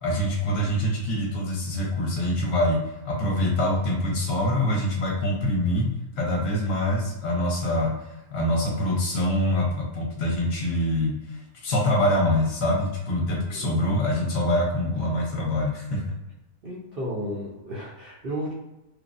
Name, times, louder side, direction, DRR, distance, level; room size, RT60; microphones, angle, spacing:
voice 1, 0.0-16.0, left 1 dB, 55° left, -1 dB, 0.9 m, -25 dB
voice 2, 13.3-13.8 16.6-18.5, equal, 55° right, -7 dB, 0.7 m, -33 dB
3.1 x 2.1 x 2.5 m, 0.94 s
omnidirectional pair, 1.5 m